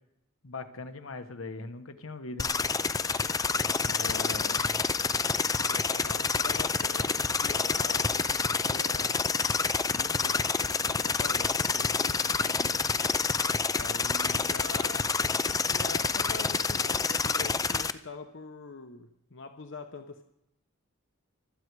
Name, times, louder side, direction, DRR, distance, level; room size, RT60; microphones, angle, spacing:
voice 1, 0.4-2.5 3.8-4.8, left 3 dB, 80° left, 9 dB, 1.3 m, -40 dB
sound 1, 2.4-17.9, left 5 dB, 15° left, 0.5 m, -28 dB
voice 2, 3.8-4.6 5.7-9.2 9.9-13.1 13.7-20.2, left 3 dB, 60° left, 7 dB, 0.9 m, -45 dB
24.5 x 9.5 x 4.8 m, 0.79 s
head